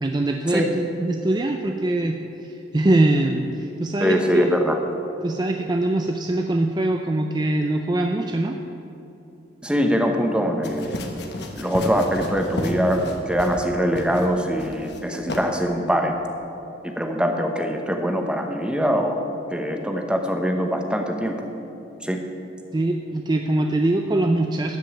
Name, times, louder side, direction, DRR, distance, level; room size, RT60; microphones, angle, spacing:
voice 1, 0.0-4.5 5.2-8.6 22.7-24.8, right 2 dB, 20° right, 4 dB, 0.4 m, -23 dB
voice 2, 4.0-4.7 9.6-11.0 11.6-16.1 17.0-21.5 22.0-22.2, equal, 5° right, 3 dB, 0.9 m, -23 dB
sound 1, 10.6-13.7 13.9-14.3 14.6-15.0 15.3-15.4, left 1 dB, 60° left, 1.2 m, -31 dB
12.5 x 5.3 x 8.9 m, 2.9 s
head